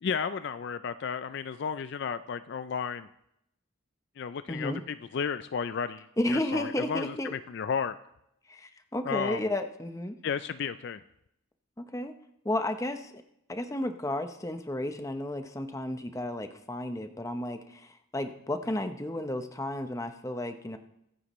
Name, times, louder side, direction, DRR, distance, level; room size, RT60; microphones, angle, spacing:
voice 1, 0.0-3.1 4.2-8.0 9.0-9.5 10.2-11.0, left 6 dB, 55° left, 12 dB, 0.3 m, -33 dB
voice 2, 4.5-4.8 6.2-7.3 8.5-10.2 11.8-12.1 12.4-13.2 13.5-20.8, left 1 dB, 15° left, 7 dB, 0.7 m, -33 dB
23.0 x 9.5 x 3.1 m, 0.80 s
head